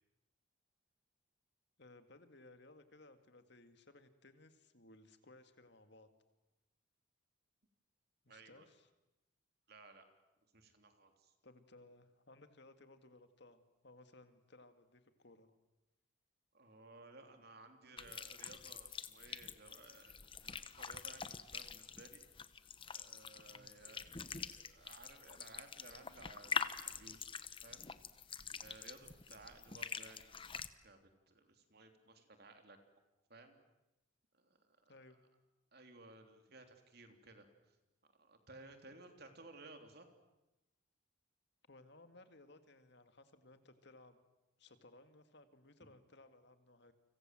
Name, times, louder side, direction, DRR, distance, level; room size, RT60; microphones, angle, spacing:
voice 1, 1.8-6.1 8.2-8.9 11.4-15.5 23.5-23.7 34.9-35.2 41.7-44.2 44.6-46.9, left 2 dB, 55° left, 9 dB, 2.1 m, -61 dB
voice 2, 8.3-8.7 9.7-10.0 10.5-11.3 16.5-22.2 22.9-27.3 27.6-27.9 28.6-31.0 31.3-32.8 33.3-33.6 34.3-35.0 35.7-37.8 38.1-40.1 45.8-45.9, right 2 dB, 50° right, 6 dB, 3.3 m, -58 dB
sound 1, 18.0-30.7, left 6 dB, 25° left, 1.0 m, -45 dB
30.0 x 25.5 x 7.7 m, 0.98 s
head